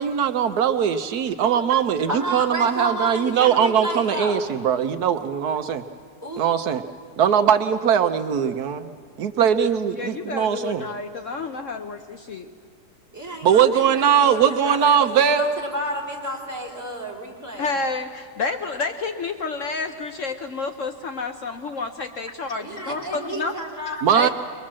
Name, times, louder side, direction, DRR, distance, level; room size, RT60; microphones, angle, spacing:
voice 1, 0.0-5.8 6.4-6.8 7.2-8.9 9.2-10.8 13.4-15.4 24.0-24.3, right 8 dB, 75° right, 9 dB, 1.3 m, -20 dB
voice 2, 2.1-4.4 6.2-6.5 13.1-17.7 22.6-24.3, right 1 dB, 10° right, -2 dB, 3.7 m, -31 dB
voice 3, 9.9-12.5 17.6-23.6 23.9-24.3, left 4 dB, 55° left, 7 dB, 1.1 m, -30 dB
22.0 x 22.0 x 7.5 m, 2.2 s
omnidirectional pair, 1.7 m